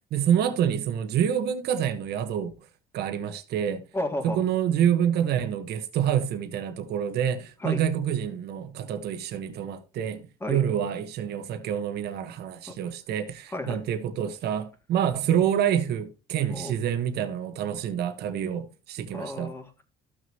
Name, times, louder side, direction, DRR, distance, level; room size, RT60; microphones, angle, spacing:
voice 1, 0.1-2.5 2.9-3.8 4.2-10.2 10.5-19.5, right 9 dB, 75° right, 1.3 m, -27 dB
voice 2, 3.9-4.4 7.6-7.8 10.4-10.6 12.7-12.8 13.5-13.8 16.5-16.7 19.1-19.8, left 1 dB, 15° left, 2.4 m, -32 dB
14.5 x 6.3 x 2.9 m
cardioid pair, 110°, 17 cm